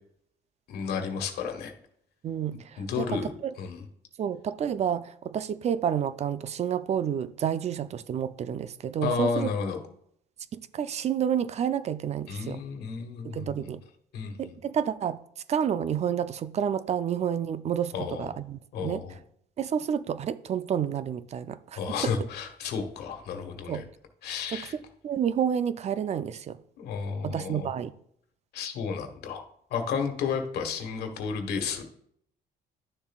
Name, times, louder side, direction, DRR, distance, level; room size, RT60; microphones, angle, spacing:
voice 1, 0.7-1.7 2.8-3.9 9.0-9.8 12.3-13.7 14.1-14.6 17.9-18.3 18.7-19.2 21.7-23.8 24.2-24.7 26.8-27.7 28.5-31.8, left 5 dB, 70° left, 1.4 m, -32 dB
voice 2, 2.2-3.5 4.2-9.5 10.5-12.6 13.2-13.8 14.4-15.2 15.5-19.0 19.6-22.1 23.7-23.8 24.5-24.6 25.0-26.6 27.2-27.9, right 8 dB, 40° right, 0.4 m, -30 dB
11.5 x 7.0 x 2.4 m
cardioid pair, 110°, 17 cm